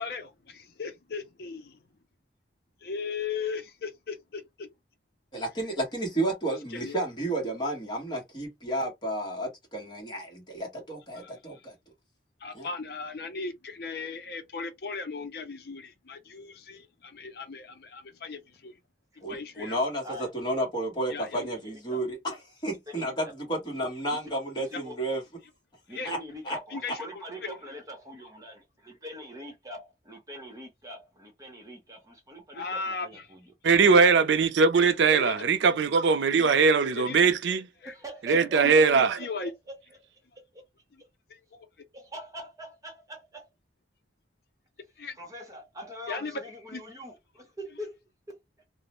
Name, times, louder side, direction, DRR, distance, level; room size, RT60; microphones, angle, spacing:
voice 1, 0.0-1.8 2.8-4.7 6.7-6.9 11.2-11.6 12.4-18.7 19.3-19.8 21.1-21.5 25.9-26.2 26.7-27.1 27.4-27.5 32.5-33.2 33.8-34.0 35.1-35.4 36.6-37.5 37.8-37.9 38.6-38.7 39.2-39.5 41.3-41.7 45.0-45.2 46.1-46.4 46.7-46.8, left 4 dB, 60° left, 0.5 m, -37 dB
voice 2, 5.3-11.7 12.5-12.7 19.2-25.2 26.0-26.2 26.4-26.6 26.9-27.0, right 1 dB, 25° left, 1.1 m, -32 dB
voice 3, 21.3-22.0 22.9-23.1 24.1-24.2 24.6-25.0 25.9-33.5 37.9-39.8 40.5-40.6 41.9-43.5 45.2-48.0 48.3-48.4, right 1 dB, 20° right, 0.9 m, -43 dB
voice 4, 33.6-37.6 38.2-39.2, right 5 dB, 80° right, 0.4 m, -21 dB
2.4 x 2.0 x 2.9 m
head